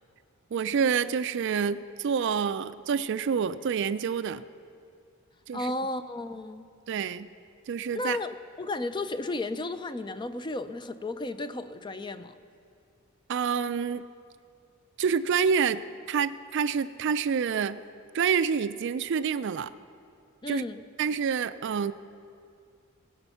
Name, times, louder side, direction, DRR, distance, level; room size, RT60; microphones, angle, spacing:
voice 1, 0.5-4.4 5.5-5.7 6.9-7.3 7.7-8.2 13.3-14.0 15.0-15.8 16.1-17.8 18.1-19.7 20.5-20.6 21.0-21.9, right 6 dB, 60° right, 14 dB, 0.4 m, -27 dB
voice 2, 5.5-6.6 7.9-12.4 20.4-20.8, left 2 dB, 20° left, 11 dB, 0.4 m, -33 dB
20.5 x 8.0 x 5.7 m, 2.4 s
head